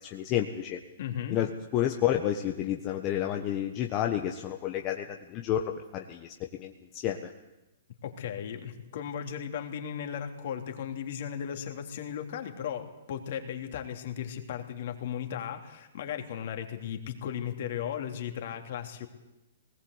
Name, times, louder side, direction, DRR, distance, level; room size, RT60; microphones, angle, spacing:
voice 1, 0.0-0.8 1.3-7.3, left 11 dB, 35° left, 3 dB, 1.5 m, -30 dB
voice 2, 1.0-1.4 8.0-19.1, left 9 dB, 55° left, 4 dB, 3.2 m, -36 dB
21.0 x 19.0 x 8.2 m, 0.99 s
hypercardioid pair, 120°, 0 cm